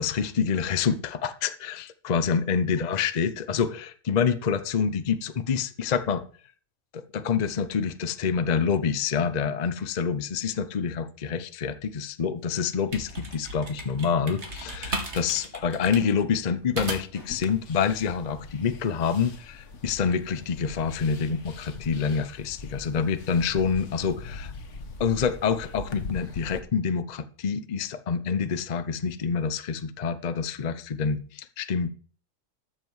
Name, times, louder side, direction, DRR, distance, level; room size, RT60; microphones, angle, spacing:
voice 1, 0.0-6.2 6.9-24.5 25.0-31.9, left 6 dB, 40° left, 12 dB, 0.7 m, -27 dB
sound 1, 12.6-17.3, right 1 dB, 60° right, 2.6 m, -36 dB
sound 2, 17.2-26.6, left 4 dB, 70° left, 1.5 m, -41 dB
13.5 x 7.5 x 4.7 m, 0.44 s
omnidirectional pair, 1.3 m